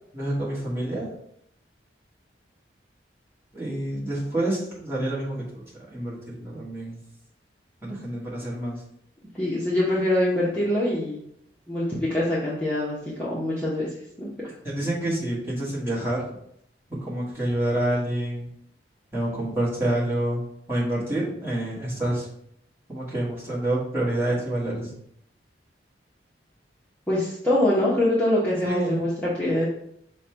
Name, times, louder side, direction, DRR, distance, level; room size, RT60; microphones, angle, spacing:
voice 1, 0.1-1.1 3.5-7.0 7.8-8.8 14.6-16.2 16.9-18.5 19.1-20.4 20.7-22.3 22.9-24.9 28.6-29.1, right 1 dB, 15° right, -7 dB, 1.3 m, -28 dB
voice 2, 9.3-11.2 11.7-13.9 14.2-14.3 27.1-29.7, left 1 dB, 10° left, -8 dB, 0.8 m, -24 dB
5.5 x 2.2 x 4.4 m, 0.71 s
head